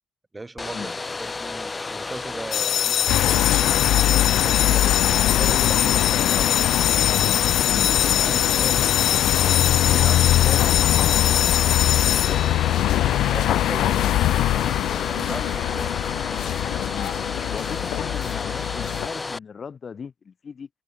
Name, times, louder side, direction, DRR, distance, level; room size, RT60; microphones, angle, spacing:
voice 1, 0.3-3.9 4.4-6.7 7.1-8.9 9.5-10.8 13.1-14.1 14.9-16.1, right 2 dB, 15° right, 1.3 m, -38 dB
Domestic sounds home sounds, 0.6-19.4, left 3 dB, 20° left, 3.4 m, -32 dB
sound 1, 2.5-12.9, left 11 dB, 65° left, 0.6 m, -23 dB
sound 2, 3.1-19.1, left 14 dB, 80° left, 1.0 m, -22 dB
voice 2, 12.1-12.4 13.7-14.2 14.6-14.8 16.9-20.7, left 6 dB, 35° left, 1.1 m, -37 dB
cardioid pair, 125°, 0 cm